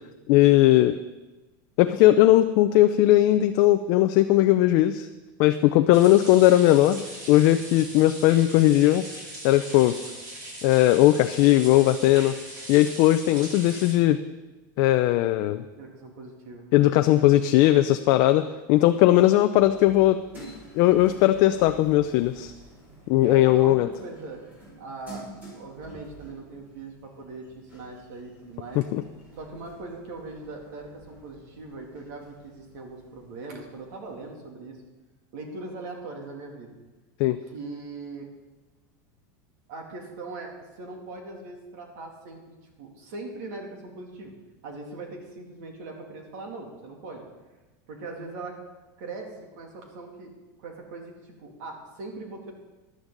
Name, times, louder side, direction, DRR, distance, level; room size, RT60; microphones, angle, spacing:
voice 1, 0.3-1.0 1.8-5.1 5.4-7.0 7.3-9.0 9.4-10.0 10.6-12.3 12.7-14.2 14.8-15.6 16.7-20.2 20.8-22.5 23.1-23.9 28.9-29.0 37.2-37.4, left 15 dB, 40° left, 9 dB, 0.4 m, -18 dB
sound 1, 5.9-13.9, right 1 dB, 35° right, 2.8 m, -40 dB
voice 2, 15.8-16.7 23.2-24.5 24.8-28.9 29.4-34.8 35.3-36.8 37.4-38.3 39.7-40.5 40.8-44.3 44.6-47.2 47.9-48.6 49.0-50.3 50.6-52.5, right 3 dB, 60° right, 2 dB, 2.7 m, -40 dB
sound 2, 19.6-34.4, right 1 dB, 15° right, 4.6 m, -49 dB
14.5 x 11.5 x 3.9 m, 1.2 s
supercardioid pair, 175°, 10 cm